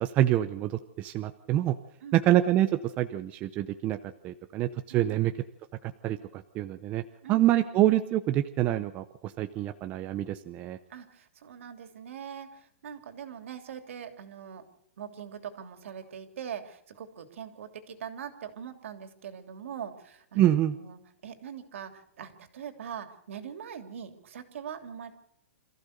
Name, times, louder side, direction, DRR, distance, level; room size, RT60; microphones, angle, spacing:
voice 1, 0.0-1.7 2.1-2.7 3.0-4.0 4.2-5.3 5.8-7.0 7.3-10.8 20.4-20.8, right 13 dB, 20° right, 8 dB, 0.7 m, -26 dB
voice 2, 4.9-5.3 7.2-7.6 10.9-14.6 15.0-25.1, right 8 dB, 65° right, 7 dB, 3.0 m, -42 dB
26.5 x 14.5 x 6.7 m, 0.73 s
hypercardioid pair, 165°, 8 cm